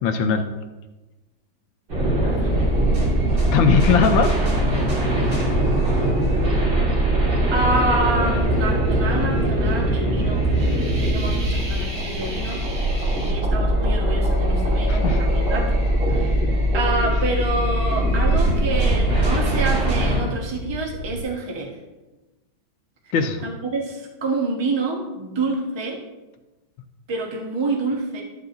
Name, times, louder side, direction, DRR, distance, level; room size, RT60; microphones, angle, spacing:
voice 1, 0.0-0.4 3.5-4.3 5.3-5.4 14.9-15.2 23.1-23.4, left 6 dB, 80° left, 7 dB, 1.4 m, -19 dB
sound 1, 1.9-20.2, right 1 dB, 55° right, 2.6 m, -21 dB
voice 2, 2.2-2.7 7.5-10.5 11.0-12.6 13.3-15.8 16.1-21.7 23.4-26.0 27.1-28.2, right 2 dB, 20° right, 0 dB, 0.7 m, -27 dB
Fire, 10.4-21.2, left 2 dB, 40° left, 1.6 m, -34 dB
13.0 x 6.8 x 2.6 m, 1.1 s
omnidirectional pair, 2.2 m